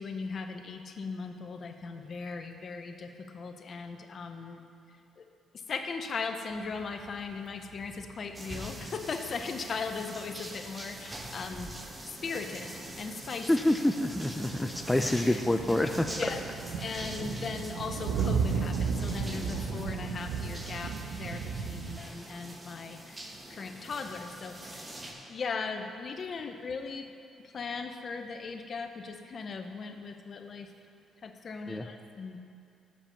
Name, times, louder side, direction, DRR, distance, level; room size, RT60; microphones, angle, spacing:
voice 1, 0.0-4.6 5.2-5.3 5.5-11.7 12.0-13.5 15.2-15.4 16.2-16.4 16.8-23.2 23.5-24.9 25.3-27.1 27.4-30.7 31.2-32.4, left 4 dB, 50° left, 6 dB, 0.6 m, -38 dB
sound 1, 6.5-10.5 10.9-11.0 11.5-11.6 12.4-12.5 12.9-13.0 13.3-13.4 13.6-22.0, right 6 dB, 90° right, 0.6 m, -35 dB
sound 2, 8.3-25.1, right 1 dB, 20° right, 1.0 m, -44 dB
voice 2, 13.5-16.1 31.7-31.9, left 1 dB, 10° left, 5 dB, 0.4 m, -27 dB
6.8 x 5.2 x 7.1 m, 2.5 s
cardioid pair, 90°, 0 cm